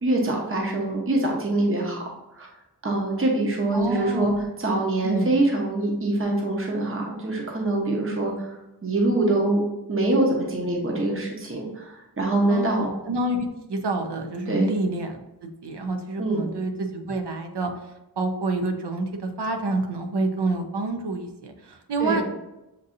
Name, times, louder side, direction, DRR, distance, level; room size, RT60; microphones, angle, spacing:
voice 1, 0.0-2.0 2.4-2.5 2.8-4.3 4.6-8.6 8.8-9.6 9.9-12.9 14.5-14.7 16.2-16.5 22.0-22.2, right 2 dB, 35° right, -1 dB, 0.9 m, -24 dB
voice 2, 3.7-4.4 5.0-5.4 12.5-22.2, right 2 dB, 80° right, 5 dB, 0.7 m, -28 dB
6.8 x 2.6 x 2.6 m, 0.95 s
wide cardioid pair, 65°, 40 cm